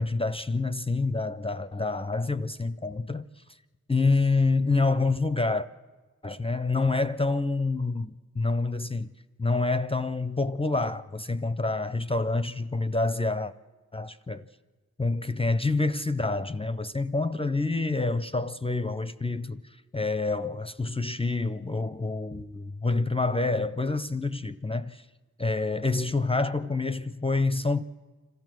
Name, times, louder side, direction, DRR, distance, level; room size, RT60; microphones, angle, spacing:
voice 1, 0.0-3.2 3.9-5.7 6.2-9.1 9.4-13.5 13.9-14.4 15.0-19.6 19.9-25.0 25.4-27.8, left 3 dB, 15° left, 0.5 m, -27 dB
26.5 x 14.0 x 7.6 m
wide cardioid pair, 70°, 34 cm